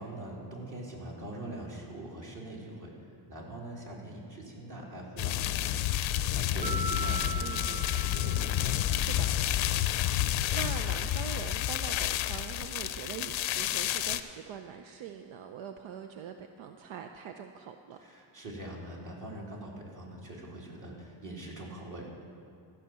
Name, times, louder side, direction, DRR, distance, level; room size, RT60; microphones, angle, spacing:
voice 1, 0.0-2.9 3.3-9.4 18.0-22.1, right 1 dB, 40° right, -3 dB, 2.9 m, -43 dB
sound 1, 5.2-14.2, left 12 dB, 75° left, 0.6 m, -30 dB
Mallet percussion, 6.6-9.0, right 2 dB, 15° right, 1.7 m, -38 dB
voice 2, 10.5-18.0, right 8 dB, 75° right, 6 dB, 0.7 m, -43 dB
14.0 x 5.8 x 7.5 m, 2.4 s
cardioid pair, 85°, 47 cm